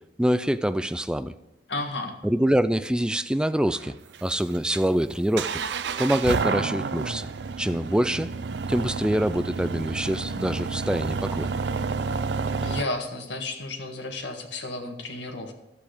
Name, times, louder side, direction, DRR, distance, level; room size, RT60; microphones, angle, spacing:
voice 1, 0.2-1.3 2.2-3.9 4.2-5.6 6.0-7.3 7.6-8.3 8.7-11.5, equal, 5° right, 12 dB, 0.4 m, -25 dB
voice 2, 1.7-2.1 12.4-15.5, left 2 dB, 75° left, 3 dB, 1.7 m, -33 dB
sound 1, 3.7-12.8, right 4 dB, 70° right, 0.5 m, -30 dB
12.5 x 8.5 x 5.1 m, 0.94 s
head